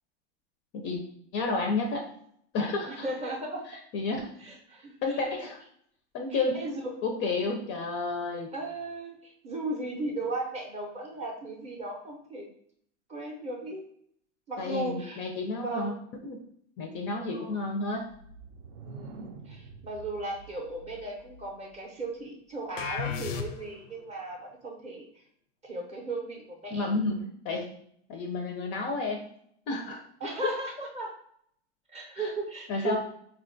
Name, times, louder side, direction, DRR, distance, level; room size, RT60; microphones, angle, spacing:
voice 1, 1.3-2.1 2.5-3.1 3.7-4.3 5.0-5.6 6.1-6.6 7.0-8.5 14.6-15.9 16.2-16.4 16.8-18.1 26.7-27.6 28.1-29.2 29.7-30.0 30.4-30.5 32.2-32.3 32.7-33.0, left 3 dB, 35° left, 3 dB, 0.4 m, -31 dB
voice 2, 2.9-3.6 4.4-5.5 6.3-6.9 8.5-12.5 13.1-13.8 14.5-15.2 15.6-15.9 17.3-17.5 18.8-25.1 25.6-26.9 30.2-31.1 31.9-33.0, right 2 dB, 20° right, 0 dB, 0.5 m, -36 dB
sound 1, 18.0-21.8, right 3 dB, 75° right, 0.5 m, -47 dB
sound 2, 22.8-23.9, left 6 dB, 85° left, 0.5 m, -34 dB
4.1 x 2.2 x 2.5 m, 0.67 s
supercardioid pair, 125°, 36 cm